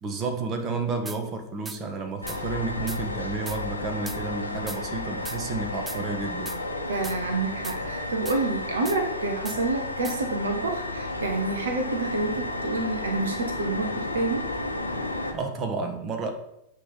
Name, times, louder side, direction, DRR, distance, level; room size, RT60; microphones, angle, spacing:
voice 1, 0.0-6.6 15.3-16.3, right 3 dB, 30° right, 6 dB, 1.2 m, -31 dB
sound 1, 1.1-1.2 1.7-1.8 2.3-2.4 2.9-3.0 3.5-3.6 4.1-4.2 4.7-4.8 5.3-5.4 5.9-6.0 6.5-6.6 7.0-7.2 7.6-7.8 8.3-8.4 8.9-9.0 9.5-9.6 10.0-10.2, right 3 dB, 10° right, 0.5 m, -38 dB
sound 2, 2.2-15.3, left 2 dB, 90° left, 1.0 m, -32 dB
voice 2, 6.9-14.5, right 3 dB, 65° right, 5 dB, 1.0 m, -28 dB
8.3 x 3.4 x 5.3 m, 0.80 s
figure-of-eight pair, 90°, 0 cm